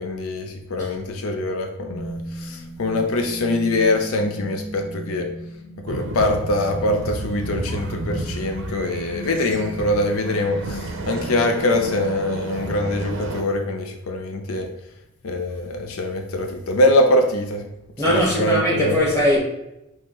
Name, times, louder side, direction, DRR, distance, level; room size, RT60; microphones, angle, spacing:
voice 1, 0.0-5.3 5.9-14.7 15.2-17.7 18.0-19.0, left 1 dB, 85° left, 0.5 m, -23 dB
sound 1, 1.9-13.9, equal, 40° left, 1.0 m, -36 dB
sound 2, 5.9-13.4, right 2 dB, 65° right, 0.5 m, -32 dB
voice 2, 18.0-19.4, left 1 dB, 15° left, 1.3 m, -20 dB
5.5 x 2.9 x 3.0 m
head